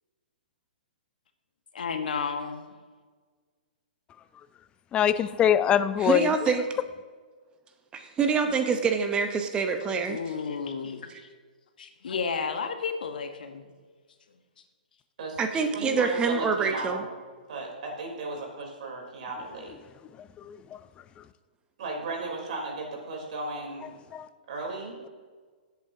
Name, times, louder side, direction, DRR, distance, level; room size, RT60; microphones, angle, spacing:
voice 1, 1.7-2.6 9.8-11.3 11.8-13.7, left 5 dB, 65° left, 7 dB, 1.2 m, -32 dB
voice 2, 4.9-6.3 20.5-20.6 24.1-24.3, left 9 dB, 20° left, 14 dB, 0.4 m, -23 dB
voice 3, 6.0-6.6 7.9-10.2 15.4-17.0, right 5 dB, 20° right, 6 dB, 0.8 m, -26 dB
voice 4, 15.2-17.2 17.5-19.7 21.8-23.9 24.5-24.9, right 3 dB, 55° right, 0 dB, 3.4 m, -35 dB
17.5 x 8.3 x 2.8 m, 1.5 s
figure-of-eight pair, 120°, 5 cm